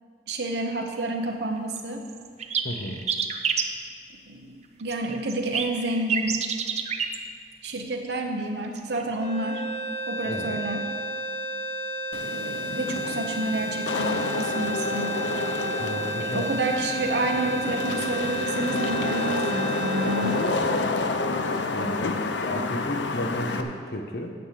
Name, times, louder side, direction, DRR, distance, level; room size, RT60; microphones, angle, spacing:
voice 1, 0.3-2.0 4.3-6.4 7.6-9.6 10.1-10.8 12.3-15.1 16.2-20.5, right 2 dB, 65° right, 2 dB, 0.9 m, -29 dB
sound 1, 1.8-1.9 2.1-3.6 4.9-7.2 8.6-9.0, right 7 dB, 35° right, 0.6 m, -28 dB
voice 2, 2.6-3.0 10.2-10.6 15.8-16.5 20.2-20.7 21.7-22.1 22.4-24.3, left 1 dB, 55° left, 4 dB, 1.0 m, -33 dB
sound 2, 9.2-21.4, right 1 dB, 35° left, 1.2 m, -32 dB
Wind / Rain, 12.1-23.6, left 3 dB, 75° left, 0.7 m, -29 dB
9.5 x 7.5 x 6.7 m, 2.1 s
head